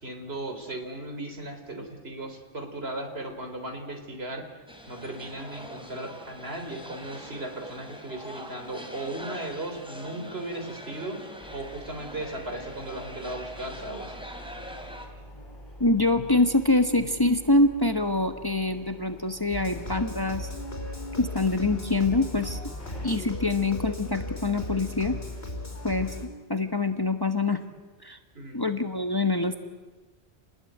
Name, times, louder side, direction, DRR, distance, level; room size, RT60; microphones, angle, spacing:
voice 1, 0.0-4.5 4.9-11.2 11.5-14.1 28.4-28.7, right 1 dB, 65° right, 5 dB, 3.8 m, -36 dB
sound 1, 4.7-15.1, equal, 5° right, 3.3 m, -43 dB
sound 2, 11.4-23.1, equal, 50° left, 8.3 m, -47 dB
voice 2, 15.8-20.5 21.2-22.6 23.0-25.2 25.8-26.1 26.5-27.6 28.0-28.2 28.5-29.6, left 2 dB, 20° left, 7 dB, 1.3 m, -25 dB
sound 3, 19.5-26.3, left 2 dB, 65° left, 4.8 m, -36 dB
28.0 x 20.0 x 9.3 m, 1.3 s
omnidirectional pair, 1.1 m